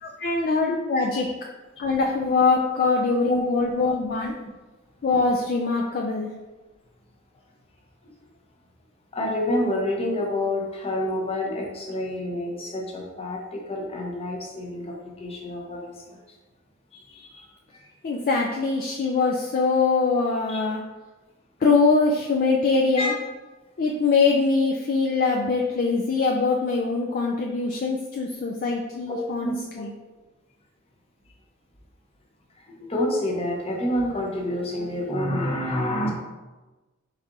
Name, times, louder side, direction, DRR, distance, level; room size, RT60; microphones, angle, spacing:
voice 1, 0.0-1.3 1.8-4.3 5.0-6.3 18.0-20.8 21.6-23.1 23.8-29.9, left 4 dB, 45° left, 0 dB, 0.3 m, -23 dB
voice 2, 9.1-16.2 16.9-17.5 20.5-20.6 23.0-23.2 29.1-29.8 32.7-36.1, left 1 dB, 30° left, 0 dB, 0.7 m, -28 dB
4.5 x 4.1 x 2.6 m, 1.2 s
head